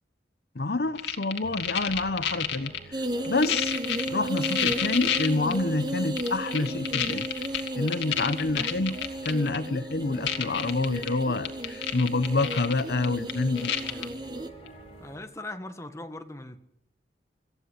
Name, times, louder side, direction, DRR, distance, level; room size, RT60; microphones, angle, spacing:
voice 1, 0.6-3.8 4.1-7.3 7.8-9.0 9.2-13.7, left 2 dB, 60° left, 12 dB, 0.9 m, -28 dB
sound 1, 1.0-2.8 3.2-5.5 6.2-9.6 9.9-10.0 10.3-11.1 11.4-14.0 14.7-14.8, left 8 dB, 90° left, 2.4 m, -29 dB
sound 2, 1.4-15.2, right 1 dB, 35° left, 7.0 m, -48 dB
sound 3, 2.9-14.5, right 1 dB, 25° right, 1.3 m, -34 dB
voice 2, 13.5-14.1 15.0-16.6, left 2 dB, 15° left, 8 dB, 1.6 m, -40 dB
27.0 x 15.0 x 8.2 m, 0.78 s
head